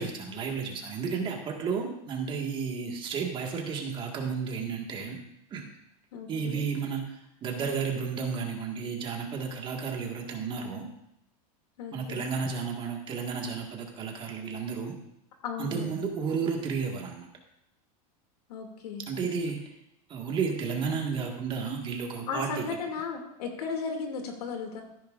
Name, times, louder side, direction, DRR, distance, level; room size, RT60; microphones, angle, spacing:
voice 1, 0.0-5.2 5.5-5.7 6.3-10.9 11.9-15.0 15.6-17.3 19.1-19.7 20.1-22.7, right 5 dB, 25° right, 1 dB, 1.8 m, -32 dB
voice 2, 6.1-6.7 11.8-12.3 15.4-15.9 18.5-19.1 22.3-24.8, left 5 dB, 85° left, 3 dB, 2.6 m, -35 dB
14.5 x 10.0 x 2.6 m, 0.83 s
supercardioid pair, 150°, 19 cm